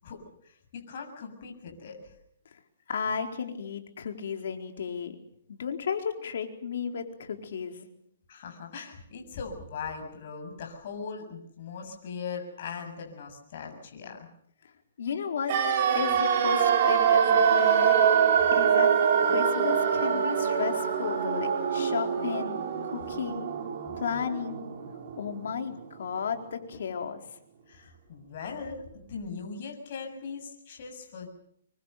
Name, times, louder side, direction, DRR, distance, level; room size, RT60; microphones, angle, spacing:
voice 1, 0.0-2.1 8.3-14.3 27.7-31.3, left 5 dB, 45° left, 3 dB, 7.1 m, -40 dB
voice 2, 2.9-5.2 5.5-7.9 15.0-15.6 15.9-17.9 18.5-23.5 24.0-24.7 25.2-27.2, left 6 dB, 65° left, 4 dB, 4.3 m, -34 dB
sound 1, 15.5-25.4 25.7-25.8, right 7 dB, 40° right, 5.4 m, -24 dB
26.5 x 24.0 x 6.9 m, 0.71 s
hypercardioid pair, 160°, 0 cm